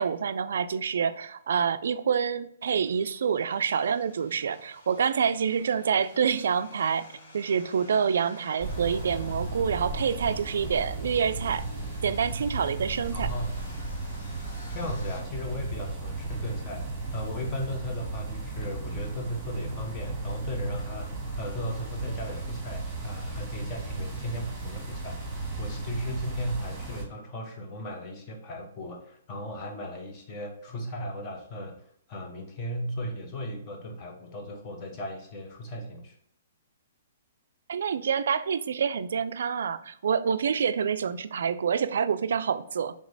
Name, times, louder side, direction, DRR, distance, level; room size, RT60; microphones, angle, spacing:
voice 1, 0.0-7.0 7.3-11.7 12.0-13.3 37.7-42.9, right 7 dB, 75° right, 0.3 m, -27 dB
sound 1, 2.7-15.2, left 1 dB, 65° left, 1.1 m, -50 dB
sound 2, 8.6-27.0, right 2 dB, 10° right, 1.5 m, -35 dB
voice 2, 13.1-13.6 14.7-16.9 17.1-31.8 32.1-36.2, equal, 30° left, 0.9 m, -36 dB
3.5 x 3.1 x 3.9 m
hypercardioid pair, 150°, 0 cm